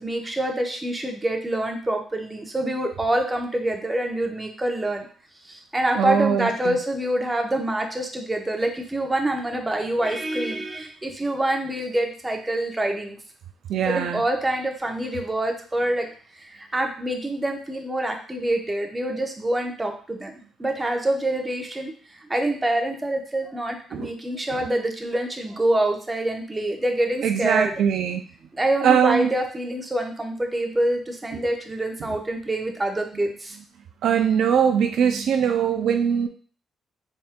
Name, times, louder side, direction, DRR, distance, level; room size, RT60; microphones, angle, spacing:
voice 1, 0.0-5.1 5.5-13.2 13.9-16.1 16.4-21.9 22.3-27.7 28.5-33.6, right 1 dB, 15° right, 3 dB, 0.8 m, -26 dB
voice 2, 6.0-6.8 13.7-14.2 23.9-24.1 24.6-24.7 27.2-28.2 28.8-29.3 34.0-36.3, right 8 dB, 75° right, 6 dB, 0.4 m, -21 dB
4.2 x 3.5 x 2.2 m, 0.42 s
cardioid pair, 90°, 0 cm